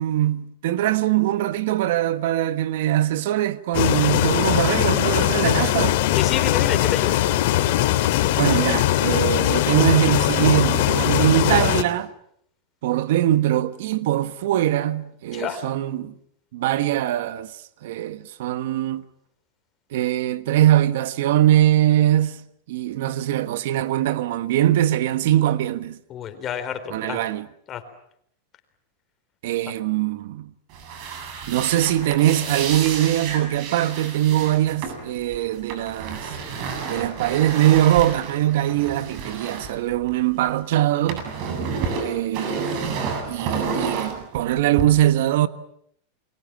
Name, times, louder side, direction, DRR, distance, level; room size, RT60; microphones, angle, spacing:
voice 1, 0.0-6.0 8.4-12.1 12.8-16.1 16.5-19.0 19.9-22.4 22.7-26.0 26.9-27.5 29.4-30.5 31.5-36.3 36.9-41.2 42.0-42.6 43.2-45.5, right 13 dB, 70° right, 1.4 m, -22 dB
sound 1, 3.7-11.8, left 14 dB, 65° left, 2.6 m, -20 dB
voice 2, 6.1-7.2 15.3-15.7 26.1-27.2 27.7-27.8, left 9 dB, 30° left, 4.0 m, -29 dB
sound 2, 30.7-40.5 40.8-44.8, right 5 dB, 50° right, 7.9 m, -31 dB
29.0 x 23.0 x 7.5 m
supercardioid pair, 135°, 0 cm